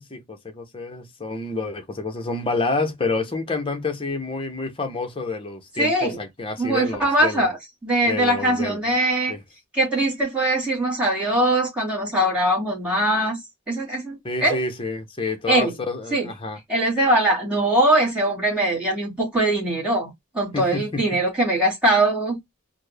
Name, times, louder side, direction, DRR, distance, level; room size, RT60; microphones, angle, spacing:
voice 1, 0.0-7.5 8.0-8.8 9.3-9.4 14.2-16.6 20.5-21.2, left 3 dB, 25° left, 0.8 m, -28 dB
voice 2, 5.8-6.2 6.6-7.6 7.8-9.3 9.7-13.4 13.7-14.6 15.5-15.7 16.1-16.3 16.7-20.1 20.3-22.4, right 1 dB, 5° right, 2.2 m, -21 dB
4.1 x 2.1 x 3.3 m
head